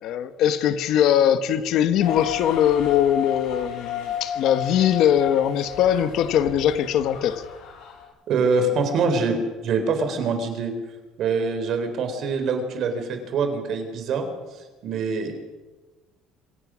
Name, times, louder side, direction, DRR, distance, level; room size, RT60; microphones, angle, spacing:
voice 1, 0.0-7.4, left 10 dB, 55° left, 11 dB, 1.3 m, -21 dB
sound 1, 2.0-8.0, left 9 dB, 80° left, 7.0 m, -32 dB
voice 2, 8.3-9.4 9.6-10.7 11.2-14.2 14.8-15.3, right 4 dB, 45° right, 7 dB, 4.0 m, -24 dB
26.5 x 17.0 x 6.3 m, 1.2 s
cardioid pair, 165°, 0 cm